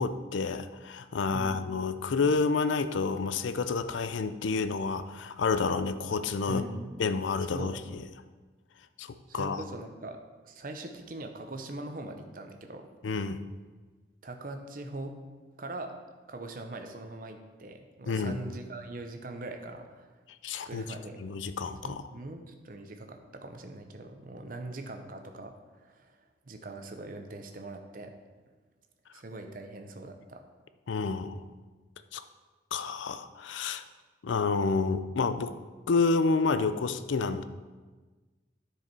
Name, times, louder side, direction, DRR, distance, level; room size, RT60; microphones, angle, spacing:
voice 1, 0.0-6.6 7.0-8.0 9.0-9.6 13.0-13.4 18.1-18.4 20.4-20.8 21.2-22.0 30.9-31.4 32.1-32.2 32.7-33.8 34.2-35.5 35.9-37.4, left 4 dB, 85° left, 12 dB, 0.5 m, -29 dB
voice 2, 1.3-1.6 6.5-7.0 7.5-8.0 9.3-10.2 10.4-12.9 14.2-15.1 15.6-15.9 16.3-20.1 20.6-21.2 21.8-28.2 29.1-30.4, right 2 dB, 50° right, 5 dB, 0.7 m, -42 dB
10.5 x 4.8 x 4.6 m, 1.3 s
head